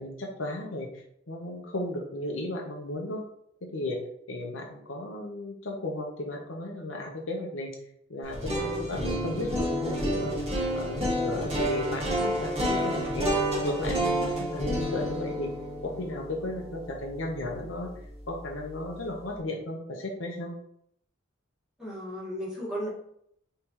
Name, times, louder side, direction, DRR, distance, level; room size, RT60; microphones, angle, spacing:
voice 1, 0.0-3.2 3.6-4.0 4.3-7.7 8.1-10.4 10.7-13.3 13.6-15.5 15.8-17.9 18.3-20.5, left 1 dB, 85° left, 1 dB, 1.0 m, -35 dB
sound 1, 8.2-18.3, equal, 30° right, 1.9 m, -30 dB
voice 2, 21.8-22.9, equal, ahead, -8 dB, 1.9 m, -34 dB
5.1 x 3.4 x 3.0 m, 0.69 s
head